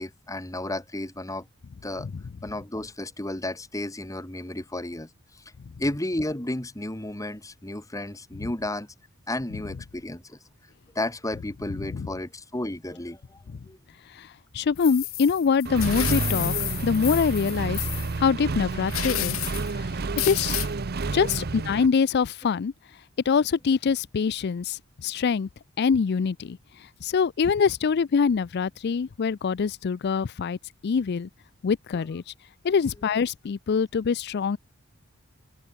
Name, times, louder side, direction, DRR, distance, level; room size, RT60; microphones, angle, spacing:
voice 1, 0.0-1.5 1.8-2.1 2.4-5.1 5.4-5.5 5.8-8.9 9.3-10.4 11.0-13.8, left 1 dB, 15° left, 1.9 m, -32 dB
voice 2, 14.5-16.5 16.8-17.8 18.2-19.4 19.7-19.9 20.2-20.6 21.1-22.7 23.3-25.5 25.8-26.6 27.0-30.6 30.8-31.3 31.6-32.2 32.6-34.6, left 6 dB, 50° left, 0.4 m, -24 dB
sound 1, 14.8-18.1 18.9-19.7 20.2-20.7, left 17 dB, 75° left, 1.1 m, -31 dB
Accelerating revving vroom, 15.6-21.9, right 3 dB, 50° right, 0.7 m, -30 dB
open air
head